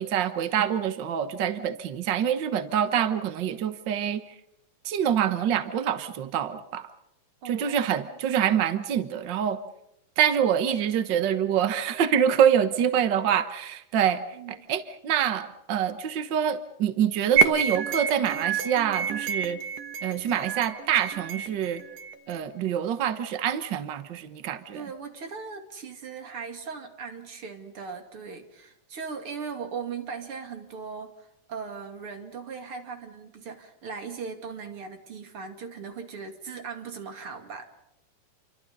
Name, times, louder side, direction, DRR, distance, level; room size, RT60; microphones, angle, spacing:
voice 1, 0.0-4.2 4.8-6.9 7.4-9.6 10.2-14.2 14.5-19.6 20.0-21.8 22.3-24.8, right 9 dB, 70° right, 10 dB, 1.1 m, -26 dB
voice 2, 7.4-8.2 14.3-14.6 24.7-37.6, right 5 dB, 45° right, 5 dB, 3.2 m, -39 dB
sound 1, 17.4-22.4, right 6 dB, 85° right, 3.0 m, -28 dB
28.5 x 24.5 x 5.5 m, 0.79 s
omnidirectional pair, 3.9 m